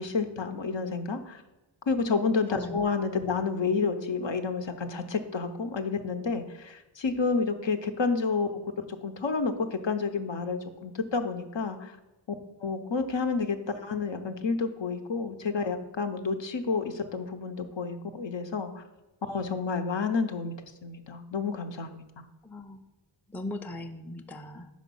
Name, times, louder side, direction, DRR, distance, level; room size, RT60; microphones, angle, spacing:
voice 1, 0.0-1.4 1.9-8.5 9.0-12.0 12.6-18.8 19.3-22.0, left 4 dB, 65° left, 7 dB, 0.7 m, -30 dB
voice 2, 22.4-22.8 23.3-24.7, left 1 dB, 5° left, 7 dB, 0.4 m, -39 dB
5.1 x 5.0 x 5.4 m, 1.1 s
wide cardioid pair, 50°, 49 cm